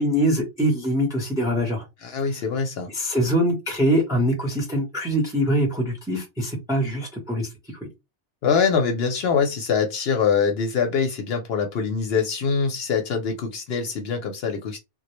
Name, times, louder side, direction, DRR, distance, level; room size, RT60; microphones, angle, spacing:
voice 1, 0.0-1.8 2.9-7.5 7.7-7.9, equal, 5° right, 1 dB, 0.5 m, -23 dB
voice 2, 2.0-2.9 8.4-14.8, left 6 dB, 65° left, 5 dB, 0.7 m, -24 dB
2.1 x 2.0 x 2.9 m, 0.22 s
omnidirectional pair, 1.2 m